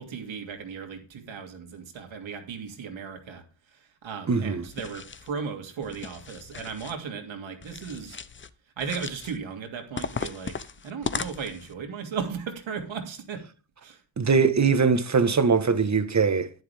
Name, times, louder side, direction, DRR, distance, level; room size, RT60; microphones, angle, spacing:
voice 1, 0.0-8.2 8.8-13.4 13.8-14.0, right 6 dB, 90° right, 2.9 m, -36 dB
voice 2, 4.3-4.6 14.2-16.5, right 5 dB, 35° right, 1.4 m, -21 dB
sound 1, 4.7-5.3 5.8-7.0 7.6-8.5 8.8-9.4 10.0-11.7, left 5 dB, 25° left, 0.6 m, -36 dB
10.5 x 10.5 x 3.6 m
wide cardioid pair, 115°, 45 cm